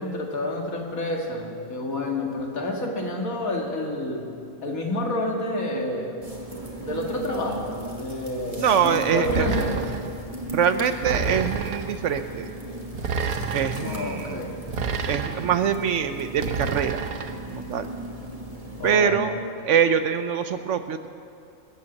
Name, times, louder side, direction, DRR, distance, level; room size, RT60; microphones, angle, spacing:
voice 1, 0.0-4.3 4.6-6.1 6.8-9.8 13.7-14.6 18.8-19.2, left 1 dB, 75° left, 0 dB, 2.4 m, -29 dB
sound 1, 6.2-18.9, right 1 dB, 25° right, 1.7 m, -38 dB
voice 2, 8.6-9.5 10.5-12.5 13.5-14.4 15.1-17.1 17.5-17.9 18.8-19.4 19.6-21.1, right 7 dB, 65° right, 10 dB, 0.9 m, -24 dB
sound 2, 9.3-10.1 11.0-11.9 12.9-13.8 14.7-15.6 16.4-17.3, right 5 dB, 85° right, 1.4 m, -29 dB
22.0 x 8.0 x 7.2 m, 2.4 s
omnidirectional pair, 1.5 m